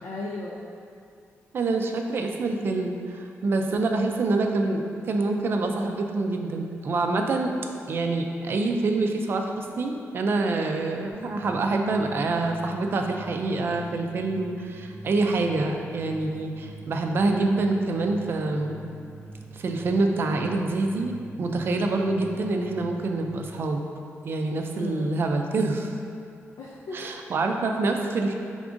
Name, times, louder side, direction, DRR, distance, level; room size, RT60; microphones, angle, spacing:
voice 1, 0.0-0.7 3.7-4.1 24.7-25.2 26.6-27.1, left 2 dB, 80° left, -3 dB, 0.4 m, -37 dB
voice 2, 1.5-7.5 7.9-18.8 19.5-21.1 21.4-23.8 24.2-25.9 26.9-28.3, right 3 dB, 50° right, 3 dB, 0.3 m, -26 dB
sound 1, 11.1-23.3, right 3 dB, 10° left, 0.9 m, -44 dB
4.8 x 3.5 x 2.5 m, 2.3 s
wide cardioid pair, 160°, 5 cm